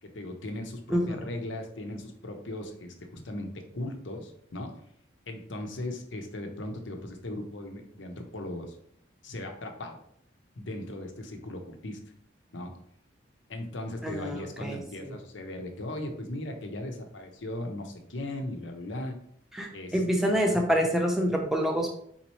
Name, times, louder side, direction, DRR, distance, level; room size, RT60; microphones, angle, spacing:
voice 1, 0.0-4.7 5.3-8.8 9.2-10.0 10.6-12.0 12.5-12.7 13.5-19.1 19.7-20.6, left 1 dB, 80° left, 4 dB, 0.8 m, -38 dB
voice 2, 14.0-14.8 15.0-15.1 19.5-21.9, equal, ahead, 0 dB, 0.7 m, -27 dB
4.2 x 3.9 x 3.0 m, 0.67 s
head